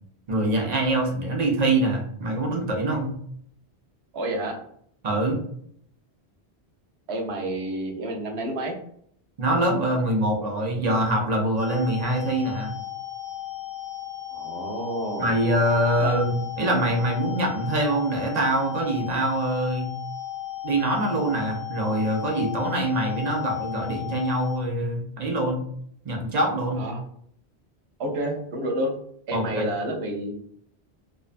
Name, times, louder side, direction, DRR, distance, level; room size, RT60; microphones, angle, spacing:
voice 1, 0.3-3.2 5.0-5.4 9.4-12.7 15.2-19.9 20.6-25.6 26.0-26.8 29.3-29.7, right 1 dB, 50° right, 1 dB, 0.5 m, -24 dB
voice 2, 4.1-4.5 7.1-8.7 14.3-15.4 16.0-16.1 26.7-27.0 28.0-28.9 29.3-30.3, right 1 dB, 80° right, 2 dB, 0.8 m, -29 dB
sound 1, 11.6-24.6, left 12 dB, 25° left, 0.6 m, -35 dB
2.6 x 2.2 x 2.4 m, 0.65 s
omnidirectional pair, 1.1 m